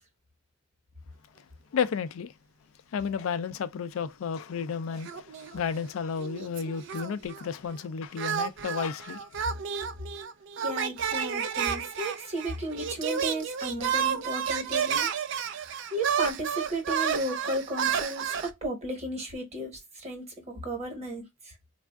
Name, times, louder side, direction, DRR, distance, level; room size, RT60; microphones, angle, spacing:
voice 1, 1.7-2.3 2.9-9.4, left 6 dB, 80° left, 0.4 m, -32 dB
sound 1, 5.0-5.9 6.2-7.5 8.2-18.5, right 7 dB, 60° right, 0.4 m, -31 dB
voice 2, 10.6-15.1 15.9-21.5, right 1 dB, 35° right, 1.1 m, -34 dB
3.4 x 2.3 x 2.2 m
head